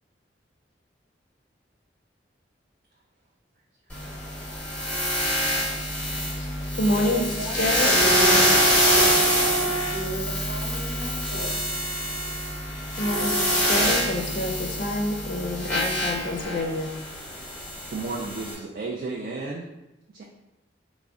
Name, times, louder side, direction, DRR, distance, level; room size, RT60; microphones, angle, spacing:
sound 1, 3.9-18.5, equal, 5° left, 0.7 m, -25 dB
voice 1, 6.4-8.0 13.0-16.9, left 1 dB, 45° left, 2 dB, 0.5 m, -28 dB
voice 2, 7.1-11.8, right 1 dB, 70° right, -3 dB, 0.9 m, -34 dB
voice 3, 17.9-19.7 20.1-20.2, right 3 dB, 50° right, -1 dB, 0.3 m, -33 dB
3.5 x 2.1 x 3.6 m, 0.96 s
head